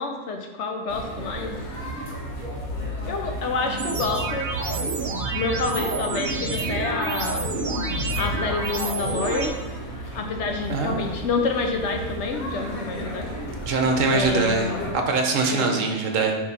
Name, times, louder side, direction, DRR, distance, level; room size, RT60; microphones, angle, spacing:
voice 1, 0.0-1.6 3.0-4.5 5.3-7.5 8.2-9.6 10.1-13.3 14.1-14.8 15.5-15.8, left 4 dB, 65° left, 4 dB, 0.9 m, -28 dB
sound 1, 0.9-14.9, equal, 85° left, 1.7 m, -33 dB
sound 2, 3.8-9.5, right 3 dB, 50° right, 0.9 m, -29 dB
voice 2, 10.7-11.0 13.6-14.7 14.9-16.3, right 4 dB, 70° right, 3 dB, 1.2 m, -22 dB
9.3 x 3.2 x 4.1 m, 1.2 s
omnidirectional pair, 1.4 m